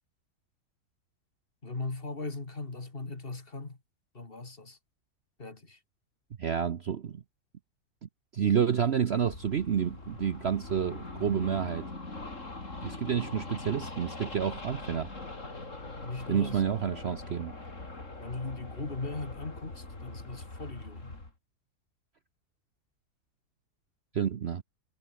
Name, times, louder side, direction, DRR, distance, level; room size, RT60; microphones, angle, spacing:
voice 1, 1.6-3.8 4.1-4.8 5.4-5.8 16.0-16.6 18.2-21.2, left 3 dB, 35° left, 2.8 m, -39 dB
voice 2, 6.4-7.2 8.0-11.9 12.8-15.1 16.3-17.5 24.1-24.6, right 8 dB, 50° right, 1.0 m, -29 dB
sound 1, 9.2-21.3, left 2 dB, 50° left, 4.8 m, -42 dB
omnidirectional pair, 1.7 m